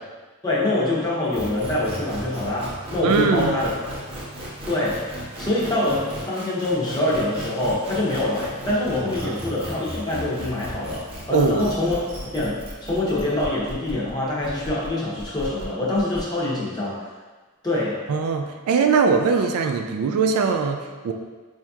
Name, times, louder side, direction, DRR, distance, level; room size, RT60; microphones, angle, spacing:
voice 1, 0.4-3.7 4.7-12.0 12.2-17.1 17.6-18.1, left 1 dB, 20° left, -7 dB, 0.8 m, -25 dB
sound 1, 1.3-16.2, right 1 dB, 25° right, 0.6 m, -36 dB
voice 2, 3.0-3.6 9.2-9.4 11.3-11.7 18.1-21.1, right 5 dB, 85° right, 5 dB, 0.3 m, -21 dB
4.5 x 2.7 x 2.3 m, 1.3 s
head